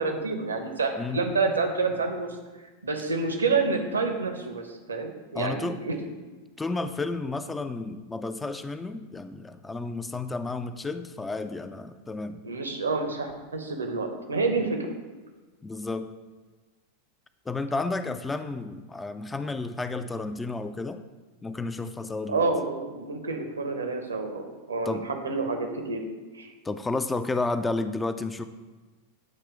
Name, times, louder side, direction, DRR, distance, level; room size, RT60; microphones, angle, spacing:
voice 1, 0.0-2.4 2.8-6.0 12.4-14.9 22.3-26.0 26.3-26.5, right 3 dB, 75° right, 5 dB, 0.8 m, -28 dB
voice 2, 1.0-1.3 5.3-5.8 6.6-12.4 15.6-16.2 17.5-21.0 21.4-22.5 24.9-25.2 26.6-28.4, left 3 dB, 10° left, 10 dB, 0.3 m, -32 dB
8.6 x 3.0 x 4.7 m, 1.3 s
figure-of-eight pair, 90°, 0 cm